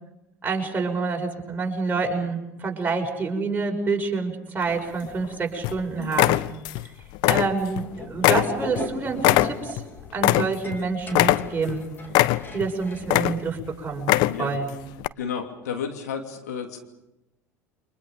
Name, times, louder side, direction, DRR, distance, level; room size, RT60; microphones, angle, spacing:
voice 1, 0.4-6.4 7.3-9.8 10.1-11.8 12.5-14.7, right 4 dB, 20° right, 1 dB, 6.2 m, -27 dB
sound 1, 4.6-5.3 5.6-5.8 6.1-6.9 7.1-7.9 8.2-10.8 11.1-11.7 12.1-12.7 13.0-13.6 14.0-14.6 15.0-15.1, left 18 dB, 55° left, 0.8 m, -21 dB
sound 2, 7.8-13.1, left 1 dB, 25° left, 4.1 m, -39 dB
voice 2, 14.3-14.6 15.2-16.8, left 7 dB, 75° left, 4 dB, 2.9 m, -32 dB
29.5 x 25.5 x 5.3 m, 0.90 s
figure-of-eight pair, 70°, 9 cm